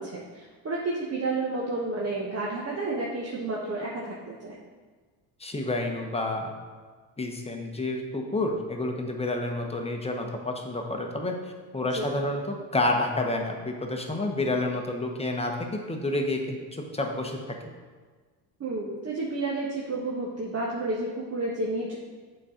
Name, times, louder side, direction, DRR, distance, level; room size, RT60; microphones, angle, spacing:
voice 1, 0.0-4.6 11.9-12.1 18.6-22.0, right 2 dB, 30° right, -4 dB, 1.2 m, -31 dB
voice 2, 5.4-6.5 7.2-11.3 11.7-17.4, left 2 dB, 10° left, 2 dB, 1.1 m, -29 dB
7.4 x 4.3 x 5.1 m, 1.5 s
supercardioid pair, 85°, 50 cm